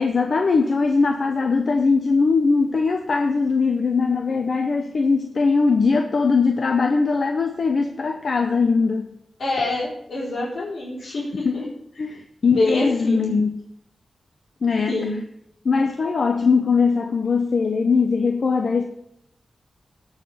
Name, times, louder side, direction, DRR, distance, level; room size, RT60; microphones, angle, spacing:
voice 1, 0.0-9.1 11.4-11.6 12.0-13.5 14.6-15.1 15.6-18.8, left 4 dB, 60° left, 5 dB, 0.8 m, -20 dB
voice 2, 9.4-11.6 12.5-13.3 14.9-15.2, left 2 dB, 80° left, -6 dB, 4.3 m, -25 dB
17.0 x 5.8 x 5.6 m, 0.79 s
wide cardioid pair, 95°, 0 cm